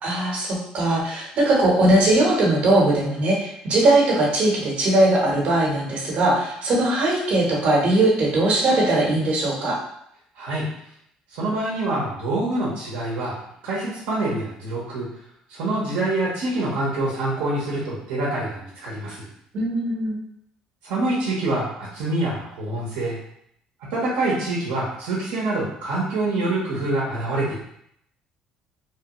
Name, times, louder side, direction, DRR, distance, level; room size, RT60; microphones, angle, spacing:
voice 1, 0.0-9.8 19.5-20.2, right 1 dB, 60° right, -2 dB, 1.1 m, -20 dB
voice 2, 11.3-13.4 13.6-15.1 15.5-19.2 20.8-23.2 23.9-27.6, right 2 dB, 80° right, -6 dB, 0.9 m, -26 dB
3.2 x 2.2 x 2.9 m, 0.73 s
supercardioid pair, 85°, 3 cm